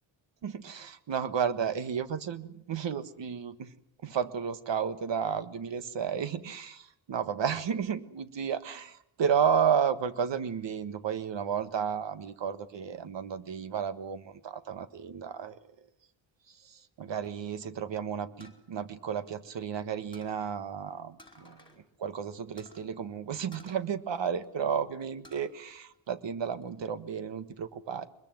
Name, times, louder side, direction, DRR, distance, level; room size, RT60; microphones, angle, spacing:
voice 1, 0.4-3.7 4.0-15.6 16.5-21.6 22.0-28.1, right 7 dB, 65° right, 12 dB, 1.6 m, -32 dB
sound 1, 18.4-19.8 20.1-20.5 21.2-21.8 22.1-22.2 22.6-22.8 23.5-24.6 25.0-25.5 25.9-26.7, left 1 dB, 10° left, 4.7 m, -55 dB
23.5 x 21.5 x 7.8 m, 0.77 s
wide cardioid pair, 135°, 47 cm